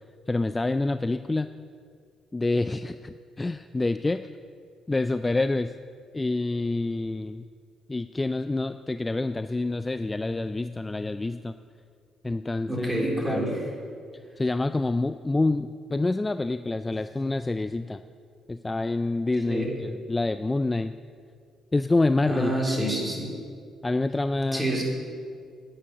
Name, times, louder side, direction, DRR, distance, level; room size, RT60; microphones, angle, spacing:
voice 1, 0.3-1.5 2.3-4.3 4.9-5.7 6.1-7.4 7.9-11.5 12.2-12.9 13.3-13.4 14.4-18.0 18.5-20.9 21.7-22.5 23.8-24.6, left 2 dB, 20° left, 10 dB, 0.3 m, -27 dB
voice 2, 12.7-13.6 19.5-19.7 22.3-23.3 24.5-24.8, right 1 dB, 15° right, -2 dB, 3.5 m, -27 dB
10.0 x 9.7 x 6.7 m, 2.2 s
cardioid pair, 90°, 0 cm